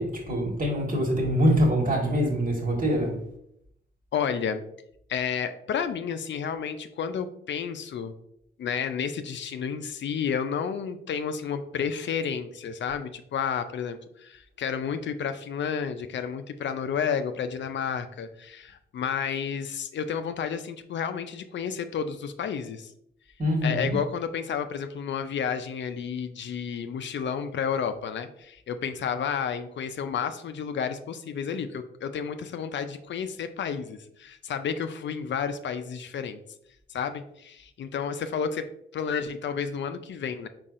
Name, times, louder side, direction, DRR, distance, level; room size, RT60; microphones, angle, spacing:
voice 1, 0.0-3.2 23.4-24.0, equal, 40° right, 1.6 m, -24 dB
voice 2, 4.1-4.6 5.1-8.1 8.6-22.9 23.6-36.4 36.9-38.7 38.9-40.5, left 7 dB, 60° left, 0.4 m, -31 dB
4.6 x 4.0 x 2.5 m
cardioid pair, 60°, 21 cm